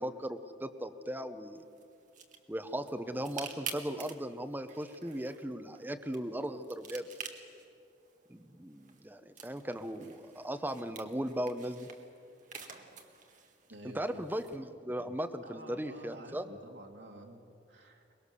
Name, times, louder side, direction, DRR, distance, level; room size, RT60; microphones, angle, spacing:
voice 1, 0.0-1.6 2.5-7.1 8.3-11.9 13.8-16.5, right 1 dB, 10° right, 8 dB, 0.8 m, -37 dB
sound 1, 1.6-14.6, right 6 dB, 45° right, 1.8 m, -50 dB
voice 2, 13.7-14.2 15.4-17.4 17.7-18.0, right 1 dB, 80° right, 1 dB, 2.7 m, -50 dB
23.5 x 21.0 x 6.9 m, 2.5 s
head